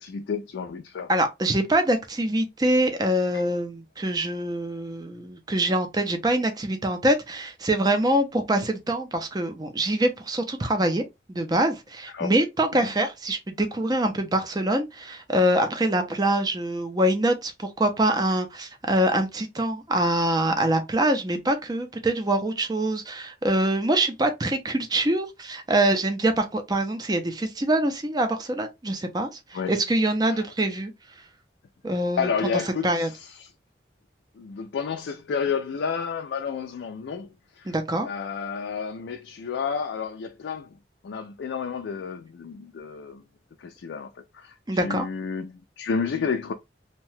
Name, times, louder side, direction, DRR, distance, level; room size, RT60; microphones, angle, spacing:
voice 1, 0.0-1.1 3.3-3.4 12.1-12.3 12.8-12.9 29.5-29.8 30.2-30.5 32.2-33.5 34.4-37.7 38.0-40.8 41.0-43.2 43.6-46.5, left 6 dB, 80° left, 0.4 m, -31 dB
voice 2, 1.1-30.9 31.8-32.3 32.8-33.1 37.7-38.1 44.7-45.1, right 1 dB, 20° right, 0.5 m, -24 dB
2.7 x 2.2 x 3.1 m
head